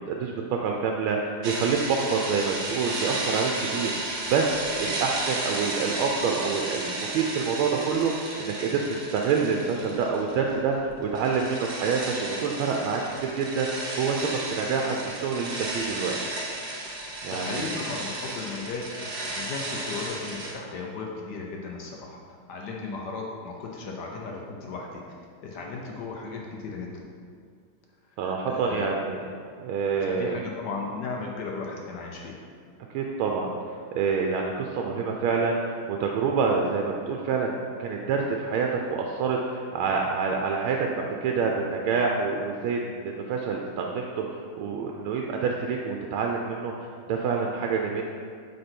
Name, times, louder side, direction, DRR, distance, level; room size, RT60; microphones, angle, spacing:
voice 1, 0.1-8.8 9.1-16.2 17.2-17.7 22.8-22.9 28.2-29.2 29.6-30.4 32.9-48.0, right 5 dB, 85° right, 1 dB, 1.4 m, -27 dB
sound 1, 1.4-10.5 10.8-20.5, right 2 dB, 45° right, 0.9 m, -33 dB
voice 2, 17.2-25.2 25.4-27.0 28.5-28.9 30.0-32.4, left 4 dB, 65° left, -1 dB, 1.2 m, -36 dB
8.3 x 3.8 x 4.4 m, 2.1 s
omnidirectional pair, 2.3 m